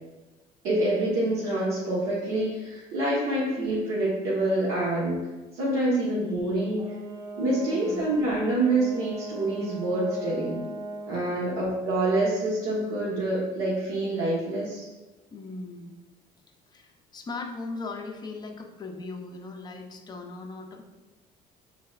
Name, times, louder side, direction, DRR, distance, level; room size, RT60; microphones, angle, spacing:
voice 1, 0.6-5.2 5.5-6.9 7.3-10.6 11.1-14.9, right 1 dB, 75° right, -8 dB, 1.2 m, -26 dB
Brass instrument, 6.8-11.3, right 2 dB, 20° right, 0.4 m, -39 dB
voice 2, 7.7-8.0 11.3-11.5 15.3-16.0 16.7-20.8, left 3 dB, 25° left, 3 dB, 0.6 m, -38 dB
5.6 x 3.9 x 2.4 m, 1.1 s
cardioid pair, 130°, 16 cm